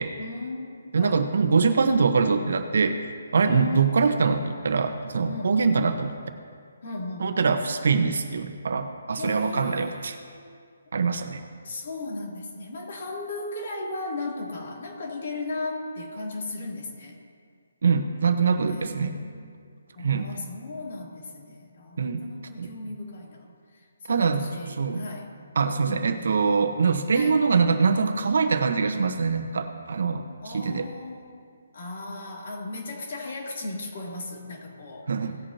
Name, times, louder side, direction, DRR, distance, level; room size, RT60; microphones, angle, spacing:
voice 1, 0.2-1.2 3.5-4.0 5.3-5.6 6.8-7.4 9.1-10.5 11.6-17.2 18.6-19.5 19.9-25.3 25.8-26.3 27.1-27.3 30.4-31.4 31.7-35.1, left 2 dB, 45° left, -2 dB, 3.0 m, -36 dB
voice 2, 0.9-6.1 7.2-10.2 10.9-11.4 17.8-19.2 20.0-20.3 22.0-22.2 22.6-22.7 24.1-25.0 25.6-30.3 30.5-30.9 35.1-35.4, right 5 dB, 60° right, 8 dB, 1.1 m, -23 dB
18.0 x 8.6 x 2.9 m, 2.1 s
hypercardioid pair, 170°, 0 cm